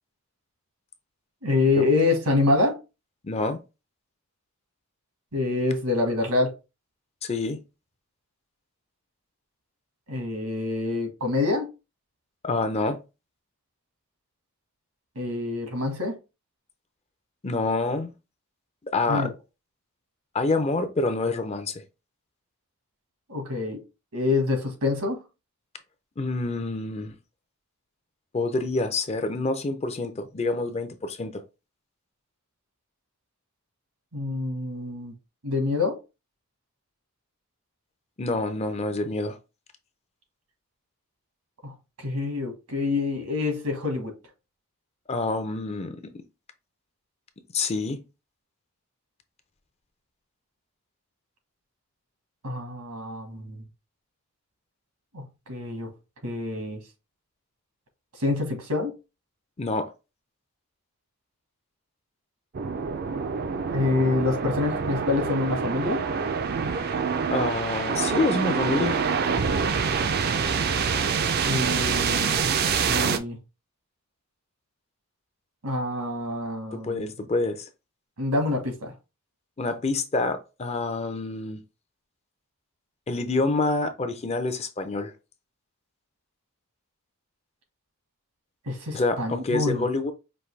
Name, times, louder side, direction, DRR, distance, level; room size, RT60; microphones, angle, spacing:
voice 1, 1.4-2.8 5.3-6.5 10.1-11.7 15.1-16.2 19.1-19.3 23.3-23.8 24.1-25.2 34.1-35.1 35.4-36.0 41.6-44.1 52.4-53.6 55.1-55.9 56.2-56.8 58.2-58.9 63.7-66.1 71.4-72.5 72.9-73.4 75.6-77.1 78.2-78.9 88.7-89.9, left 3 dB, 85° right, 1.5 m, -26 dB
voice 2, 3.2-3.6 7.2-7.6 12.4-13.0 17.4-18.1 18.8-19.3 20.3-21.8 26.2-27.1 28.3-31.4 38.2-39.4 45.1-46.1 47.5-48.0 59.6-59.9 66.7-67.0 67.3-69.0 76.7-77.7 79.6-81.6 83.1-85.1 88.9-90.1, left 3 dB, 30° left, 0.5 m, -27 dB
sound 1, 62.5-73.2, right 6 dB, 45° right, 0.4 m, -26 dB
5.3 x 2.6 x 3.2 m
head